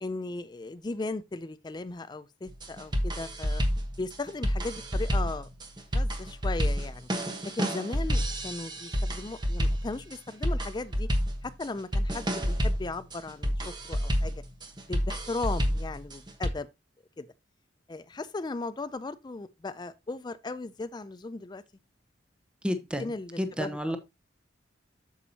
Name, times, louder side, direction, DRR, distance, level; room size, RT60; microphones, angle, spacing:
voice 1, 0.0-3.6 4.0-5.5 5.9-7.1 7.5-11.1 11.4-14.3 14.9-16.7 17.2-17.3 17.9-21.6 23.0-23.8, left 3 dB, 25° left, 0.4 m, -37 dB
sound 1, 2.5-16.5, equal, 25° right, 1.2 m, -29 dB
voice 2, 22.6-24.0, equal, 5° right, 1.0 m, -31 dB
8.4 x 7.1 x 2.8 m
head